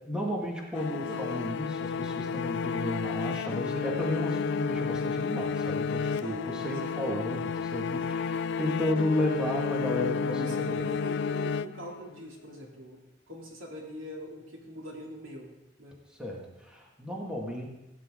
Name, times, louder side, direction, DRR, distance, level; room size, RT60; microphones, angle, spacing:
voice 1, 0.1-10.9 16.2-17.7, left 1 dB, 5° right, -2 dB, 1.9 m, -33 dB
sound 1, 0.7-12.2, left 5 dB, 60° left, 0.3 m, -31 dB
voice 2, 0.7-1.2 6.2-6.5 6.8-7.0 10.3-15.5 15.8-15.9, equal, 85° right, -1 dB, 2.9 m, -42 dB
17.0 x 9.5 x 3.8 m, 0.94 s
head